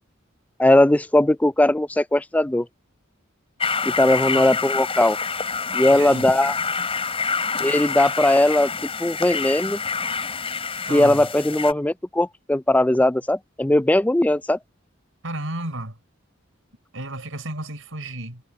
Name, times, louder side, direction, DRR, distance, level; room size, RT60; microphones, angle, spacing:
voice 1, 0.6-2.7 3.8-5.2 5.7-6.6 7.6-8.7 9.0-9.8 10.9-14.6, left 1 dB, 5° left, 0.3 m, -19 dB
sound 1, 3.6-11.7, left 5 dB, 30° left, 4.2 m, -27 dB
voice 2, 5.9-6.3 10.9-11.3 15.2-15.9 16.9-18.4, right 1 dB, 80° right, 4.2 m, -32 dB
head